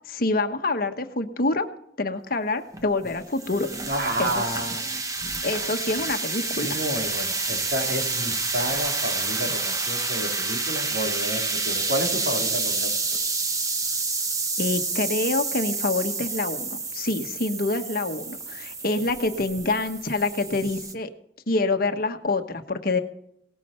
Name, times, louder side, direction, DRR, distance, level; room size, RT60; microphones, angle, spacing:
voice 1, 0.1-1.7 2.0-3.7 4.2-4.4 5.4-6.8 14.6-21.1 21.5-23.0, left 2 dB, 55° left, 7 dB, 1.3 m, -26 dB
sound 1, 2.7-20.9, right 3 dB, 20° right, 1.2 m, -29 dB
voice 2, 3.9-4.8 6.6-13.2, equal, 65° right, 1 dB, 3.7 m, -30 dB
18.5 x 12.5 x 4.5 m, 0.74 s
head